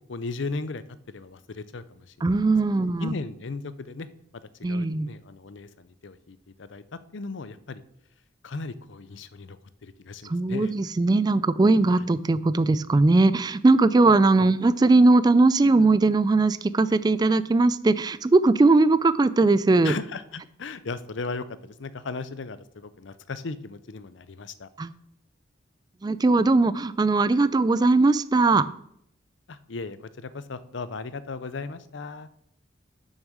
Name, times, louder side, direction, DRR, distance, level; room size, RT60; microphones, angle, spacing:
voice 1, 0.1-2.4 2.8-4.1 4.7-7.8 8.4-10.7 12.0-12.1 14.4-14.5 19.8-24.7 29.5-32.3, left 4 dB, 65° left, 14 dB, 0.6 m, -37 dB
voice 2, 2.2-3.1 4.6-5.1 10.2-19.9 24.8-24.9 26.0-28.7, right 3 dB, 20° right, 15 dB, 0.3 m, -20 dB
7.1 x 6.4 x 6.3 m, 0.72 s
head